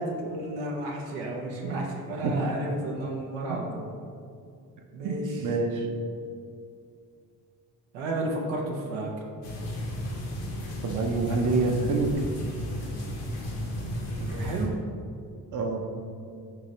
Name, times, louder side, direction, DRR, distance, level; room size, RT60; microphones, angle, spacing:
voice 1, 0.0-3.9 4.9-5.6 7.9-9.2 14.2-14.8, right 1 dB, 85° right, -1 dB, 0.7 m, -32 dB
voice 2, 5.0-5.9 10.8-12.3 15.5-15.8, right 3 dB, 40° right, 2 dB, 0.7 m, -27 dB
sound 1, 9.4-14.6, equal, 80° left, 0.9 m, -33 dB
4.8 x 2.8 x 3.0 m, 2.4 s
hypercardioid pair, 45°, 47 cm